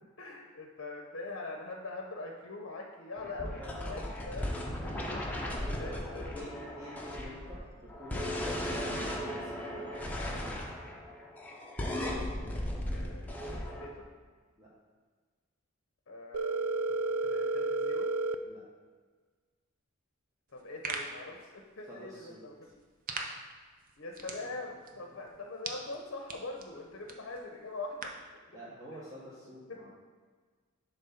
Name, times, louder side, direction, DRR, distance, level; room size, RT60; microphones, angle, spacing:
voice 1, 0.2-4.5 4.8-4.9 5.8-6.7 12.9-14.1 16.1-18.1 20.5-22.7 24.0-28.1 28.9-29.0, left 3 dB, 60° left, 1 dB, 0.7 m, -43 dB
sound 1, 3.2-13.9, left 1 dB, 5° left, 0.9 m, -36 dB
voice 2, 3.6-4.1 5.1-5.5 5.9-6.0 6.3-10.7 14.6-14.7 18.4-18.6 21.9-22.4 28.5-29.9, equal, 15° right, -8 dB, 1.0 m, -48 dB
Telephone, 16.3-18.3, right 3 dB, 85° right, 0.4 m, -31 dB
sound 2, 20.5-28.3, right 3 dB, 40° right, 0.7 m, -44 dB
7.5 x 3.5 x 5.7 m, 1.5 s
head